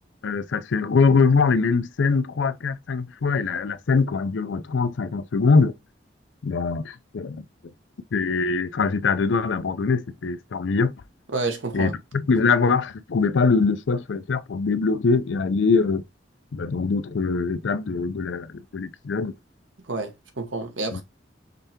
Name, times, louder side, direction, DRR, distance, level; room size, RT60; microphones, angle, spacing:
voice 1, 0.2-5.7 6.4-7.4 8.1-10.9 11.7-16.0 16.5-19.3 20.9-21.0, left 4 dB, 80° left, 0.5 m, -23 dB
voice 2, 11.3-11.9 19.9-21.0, right 3 dB, 85° right, 1.1 m, -29 dB
5.2 x 3.3 x 2.8 m
head